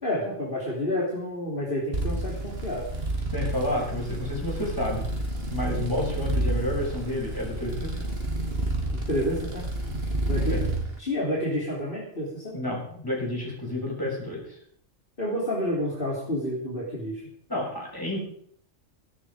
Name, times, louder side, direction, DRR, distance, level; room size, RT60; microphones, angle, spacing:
voice 1, 0.0-2.9 8.9-9.7 10.2-10.7 11.0-12.6 15.2-17.2, left 1 dB, 40° left, -4 dB, 3.8 m, -29 dB
sound 1, 1.9-10.8, right 1 dB, 50° right, 2.8 m, -30 dB
voice 2, 3.3-5.1 5.5-8.0 10.5-10.6 12.5-14.4 17.5-18.2, left 1 dB, 15° left, -3 dB, 6.9 m, -30 dB
19.0 x 12.0 x 5.1 m, 0.63 s
omnidirectional pair, 1.3 m